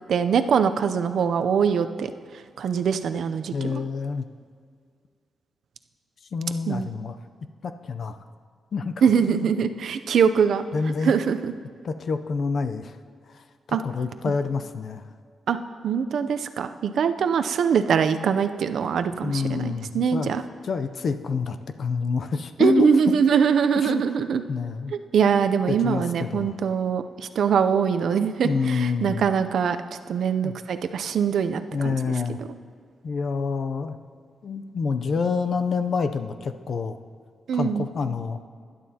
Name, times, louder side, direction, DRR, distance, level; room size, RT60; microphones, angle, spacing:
voice 1, 0.1-2.1 2.6-3.7 6.7-6.9 9.0-10.6 11.0-11.5 13.7-13.8 15.5-15.6 15.8-20.4 22.6-24.4 24.9-29.8 30.1-32.1 37.5-37.9, right 7 dB, 60° right, 9 dB, 0.5 m, -23 dB
voice 2, 3.5-4.3 6.3-7.2 7.6-8.2 8.7-8.9 9.3-9.5 10.7-11.1 11.8-13.0 13.3-15.1 19.2-20.3 20.6-22.9 23.7-24.0 24.5-25.0 25.7-26.5 28.4-29.3 30.4-30.5 31.7-32.4 33.0-34.0 34.4-37.0 37.5-38.4, left 5 dB, 45° left, 9 dB, 0.5 m, -27 dB
20.0 x 11.0 x 2.8 m, 2.1 s
wide cardioid pair, 175°, 0 cm